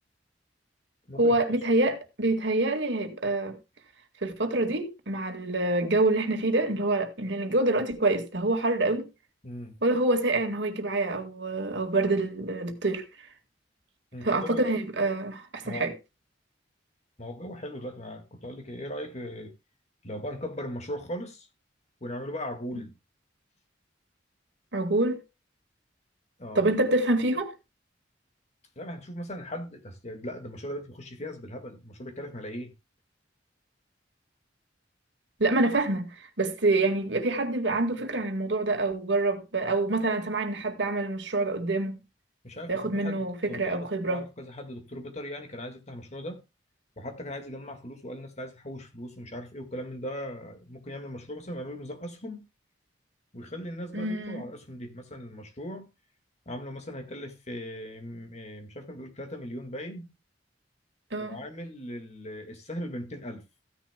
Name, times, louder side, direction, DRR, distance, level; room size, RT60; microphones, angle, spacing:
voice 1, 1.2-3.6 4.2-9.1 9.8-13.1 14.2-15.9 24.7-25.2 26.6-27.5 35.4-42.0 42.7-44.2 53.9-54.4 61.1-61.4, right 2 dB, 70° right, 1.9 m, -26 dB
voice 2, 9.4-9.8 14.1-14.7 15.6-15.9 17.2-19.5 20.0-21.5 22.0-22.9 26.4-26.7 28.8-32.7 42.4-46.4 47.0-52.4 53.3-55.9 56.5-60.1 61.2-63.4, equal, 40° left, 2.0 m, -38 dB
15.0 x 10.0 x 2.3 m
head